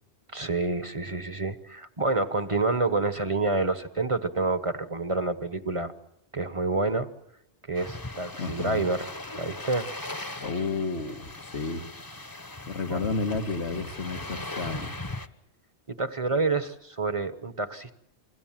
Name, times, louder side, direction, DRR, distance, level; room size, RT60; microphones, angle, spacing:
voice 1, 0.3-5.9 6.3-7.1 7.7-9.1 9.3-9.9 12.9-13.0 15.9-17.9, right 3 dB, 30° right, 11 dB, 1.1 m, -28 dB
sound 1, 7.7-15.3, left 2 dB, 20° left, 1.0 m, -39 dB
voice 2, 8.4-8.9 10.4-11.9 12.7-14.9, left 3 dB, 90° left, 5 dB, 2.0 m, -31 dB
29.5 x 22.0 x 7.5 m, 0.76 s
omnidirectional pair, 1.1 m